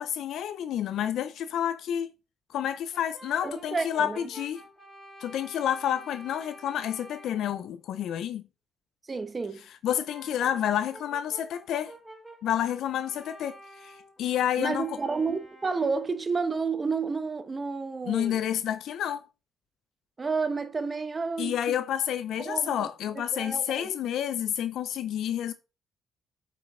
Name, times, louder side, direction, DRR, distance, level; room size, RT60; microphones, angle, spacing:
voice 1, 0.0-2.1 2.5-4.6 5.2-8.4 9.8-11.9 12.4-15.0 18.1-19.2 21.4-25.5, left 10 dB, 75° left, 0.5 m, -29 dB
Brass instrument, 2.9-7.5 9.8-16.2, right 1 dB, ahead, 4.2 m, -50 dB
voice 2, 3.4-4.2 9.1-9.6 14.6-18.4 20.2-21.8 22.4-22.9 23.3-23.9, right 4 dB, 30° right, 1.0 m, -30 dB
8.3 x 5.4 x 3.6 m
cardioid pair, 90°, 0 cm